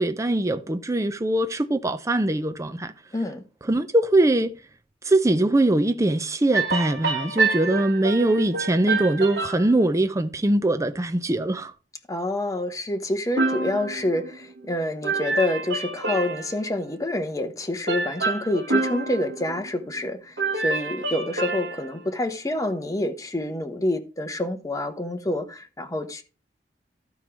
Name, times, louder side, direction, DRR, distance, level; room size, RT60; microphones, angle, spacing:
voice 1, 0.0-2.9 3.6-4.5 5.0-11.7, right 1 dB, 20° right, 0.6 m, -22 dB
voice 2, 3.1-3.4 12.1-26.2, left 1 dB, 20° left, 1.1 m, -27 dB
sound 1, 6.5-9.7 13.4-14.7 15.0-16.7 17.9-20.1 20.4-22.0, right 3 dB, 75° right, 1.6 m, -27 dB
12.0 x 4.7 x 6.0 m
head